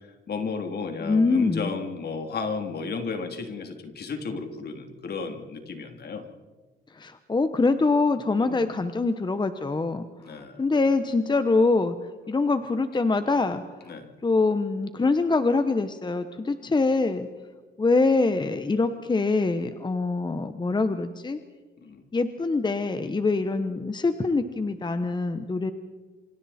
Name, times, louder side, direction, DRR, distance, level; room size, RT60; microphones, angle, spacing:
voice 1, 0.3-6.2 8.4-8.7 10.2-10.6 13.9-14.1 16.6-16.7 21.8-22.0, left 4 dB, 55° left, 5 dB, 3.3 m, -33 dB
voice 2, 1.0-1.7 6.9-12.0 12.3-13.9 14.2-17.3 17.8-21.4 22.1-25.7, left 3 dB, 20° left, 10 dB, 1.1 m, -24 dB
27.5 x 25.5 x 4.4 m, 1.4 s
cardioid pair, 90°, 20 cm